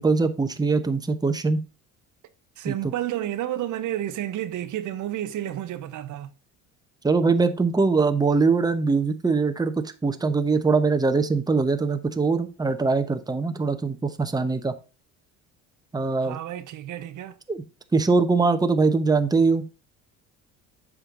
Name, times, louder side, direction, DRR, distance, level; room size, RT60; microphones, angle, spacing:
voice 1, 0.0-1.6 2.7-2.8 7.0-14.7 15.9-16.4 17.5-17.6 17.9-19.6, right 4 dB, 10° right, 1.0 m, -22 dB
voice 2, 2.6-6.3 16.2-17.4, right 12 dB, 60° right, 0.8 m, -31 dB
7.8 x 5.1 x 3.8 m
supercardioid pair, 90°, 34 cm